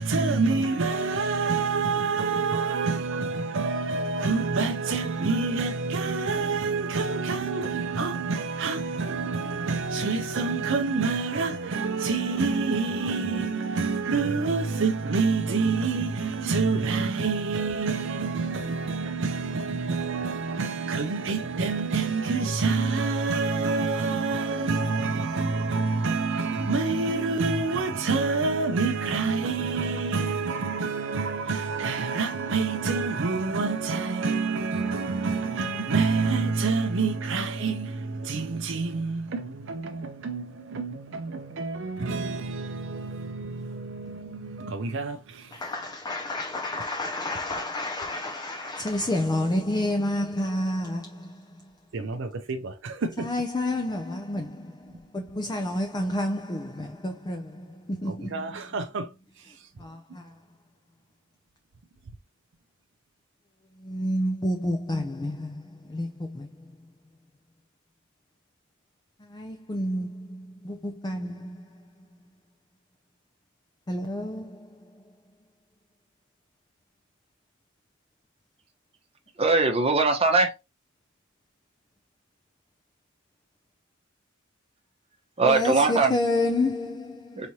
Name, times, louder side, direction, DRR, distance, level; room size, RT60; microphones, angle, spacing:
voice 1, 0.0-45.6 51.9-53.3 58.1-59.1, right 4 dB, 65° right, 0.5 m, -27 dB
voice 2, 45.5-51.7 53.2-58.5 59.8-60.4 63.8-66.9 69.2-71.9 73.9-75.0 85.4-87.5, left 1 dB, 20° left, 0.5 m, -30 dB
voice 3, 79.4-80.5 85.4-86.1 87.4-87.5, right 3 dB, 30° right, 0.9 m, -21 dB
4.8 x 3.1 x 2.7 m
head